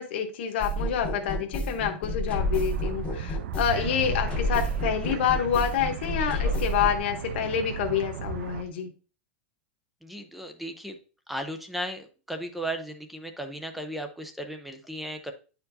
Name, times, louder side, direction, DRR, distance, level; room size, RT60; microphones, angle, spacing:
voice 1, 0.0-8.9, left 8 dB, 60° left, 4 dB, 1.0 m, -28 dB
sound 1, 0.6-7.0, equal, 15° left, 0.9 m, -30 dB
sound 2, 2.3-8.6, right 10 dB, 90° right, 0.4 m, -37 dB
sound 3, 3.7-8.7, right 3 dB, 55° right, 2.0 m, -43 dB
voice 2, 10.0-11.0 11.3-15.3, right 1 dB, ahead, 6 dB, 0.4 m, -36 dB
9.7 x 4.5 x 2.7 m, 0.36 s
supercardioid pair, 170°, 7 cm